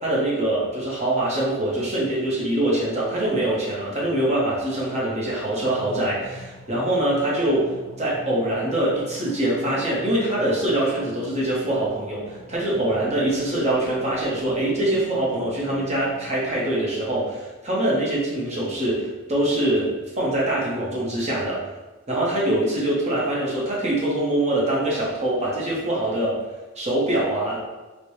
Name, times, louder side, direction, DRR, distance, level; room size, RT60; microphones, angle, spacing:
voice 1, 0.0-7.7 8.0-21.6 22.1-26.4 26.8-27.6, right 1 dB, 30° right, -5 dB, 0.8 m, -24 dB
sound 1, 5.6-16.8, equal, 40° left, 0.7 m, -43 dB
4.0 x 2.1 x 3.1 m, 1.2 s
head